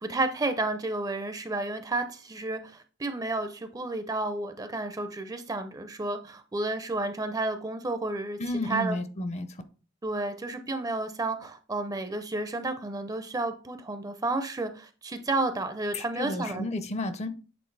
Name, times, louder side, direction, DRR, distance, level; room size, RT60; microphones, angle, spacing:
voice 1, 0.0-8.4 8.7-9.0 10.0-16.7, right 2 dB, 20° right, 0.5 m, -31 dB
voice 2, 8.4-9.6 15.9-17.3, left 1 dB, 35° left, 0.5 m, -32 dB
7.8 x 3.7 x 3.2 m
head